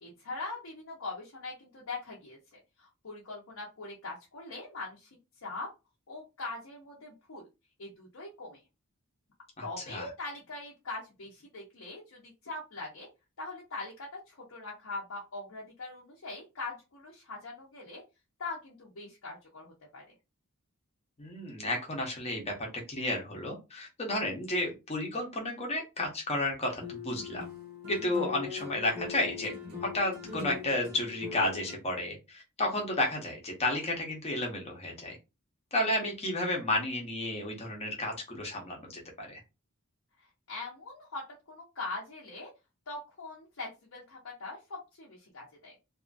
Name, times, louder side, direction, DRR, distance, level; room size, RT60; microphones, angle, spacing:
voice 1, 0.0-5.1 5.4-5.7 6.1-7.4 7.8-8.6 9.6-13.1 13.4-18.0 18.4-20.0 40.2-42.5 42.9-45.8, left 3 dB, 70° left, -3 dB, 0.8 m, -42 dB
voice 2, 9.6-10.1 21.2-27.4 27.9-29.5 29.8-35.2 35.7-39.4, left 1 dB, 30° left, 0 dB, 0.9 m, -32 dB
sound 1, 26.8-31.7, left 6 dB, 45° right, 1.0 m, -41 dB
2.7 x 2.5 x 2.5 m, 0.26 s
head